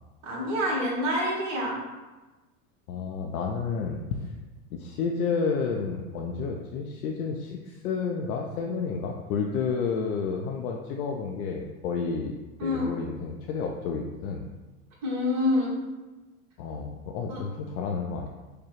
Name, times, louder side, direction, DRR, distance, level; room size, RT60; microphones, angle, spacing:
voice 1, 0.2-1.8 12.6-12.9 15.0-15.8 17.3-17.4, left 1 dB, 40° right, -4 dB, 1.4 m, -27 dB
voice 2, 2.9-4.3 4.7-12.4 12.6-14.5 16.6-18.3, left 5 dB, 85° left, 1 dB, 0.5 m, -30 dB
4.7 x 2.2 x 3.0 m, 1.2 s
hypercardioid pair, 115°, 44 cm